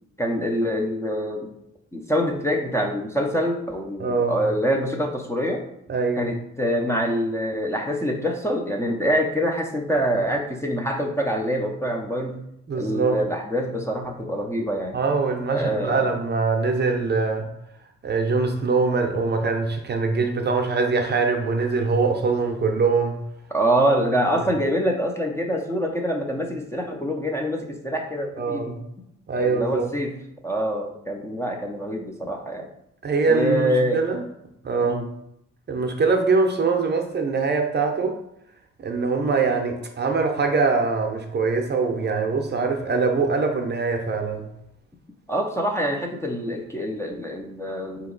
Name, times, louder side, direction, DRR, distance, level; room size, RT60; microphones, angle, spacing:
voice 1, 0.2-1.5 1.9-5.7 6.2-12.4 12.7-15.0 15.5-16.1 23.5-28.8 29.4-30.1 30.4-32.7 33.3-34.0 34.8-35.1 45.3-48.1, equal, 10° left, 1 dB, 0.5 m, -25 dB
voice 2, 4.0-4.4 5.9-6.3 12.7-13.2 14.9-17.5 18.0-23.2 28.4-28.8 29.3-29.9 33.0-34.2 34.6-35.0 35.7-38.2 38.8-44.5, right 4 dB, 35° right, 3 dB, 0.7 m, -23 dB
4.0 x 2.9 x 3.9 m, 0.79 s
cardioid pair, 90°, 30 cm